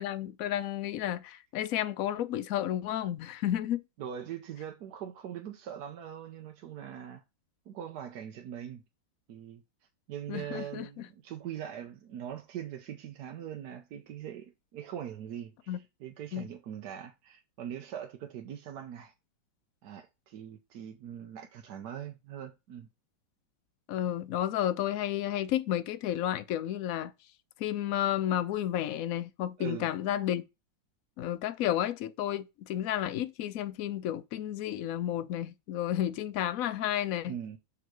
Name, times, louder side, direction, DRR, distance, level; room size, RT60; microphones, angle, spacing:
voice 1, 0.0-3.8 10.3-11.1 15.7-15.8 16.3-16.5 23.9-27.1 27.6-30.4 31.2-37.3, left 11 dB, 70° left, 0.8 m, -32 dB
voice 2, 4.0-7.2 7.7-8.8 9.3-9.6 10.1-19.1 19.8-22.9 29.6-29.9 37.3-37.6, right 9 dB, 65° right, 1.2 m, -42 dB
6.7 x 3.7 x 4.7 m
omnidirectional pair, 2.1 m